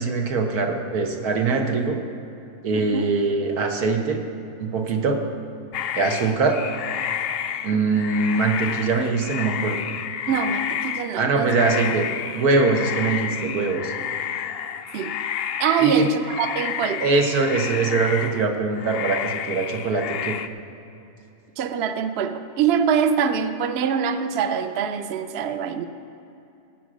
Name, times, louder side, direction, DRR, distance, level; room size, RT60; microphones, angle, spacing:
voice 1, 0.0-2.0 2.6-4.2 4.6-5.2 5.9-6.6 7.6-9.9 11.1-13.9 15.8-16.1 17.0-20.4, right 4 dB, 90° right, 3 dB, 1.6 m, -22 dB
voice 2, 2.7-3.0 7.7-8.0 10.3-11.5 14.9-15.1 15.6-17.1 21.6-25.9, right 7 dB, 60° right, 9 dB, 0.7 m, -24 dB
sound 1, 5.7-18.5 18.8-20.5, left 9 dB, 90° left, 0.5 m, -30 dB
17.0 x 6.1 x 6.3 m, 2.8 s
omnidirectional pair, 1.6 m